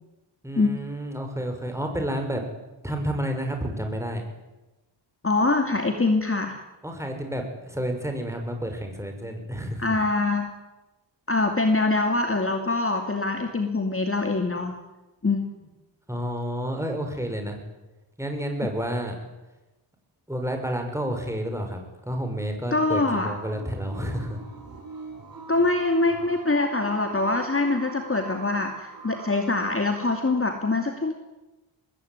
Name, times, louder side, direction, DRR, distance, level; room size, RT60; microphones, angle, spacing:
voice 1, 0.4-2.4 2.8-4.2 6.8-9.8 16.1-17.6 18.2-19.1 20.3-24.4, equal, 5° right, 4 dB, 6.2 m, -30 dB
voice 2, 5.2-6.6 9.8-10.5 11.3-14.8 15.2-15.4 22.7-23.4 25.5-31.1, left 3 dB, 25° left, 5 dB, 2.5 m, -24 dB
sound 1, 23.3-30.2, right 4 dB, 45° right, 6.8 m, -42 dB
25.0 x 20.5 x 9.7 m, 1.1 s
wide cardioid pair, 105°, 49 cm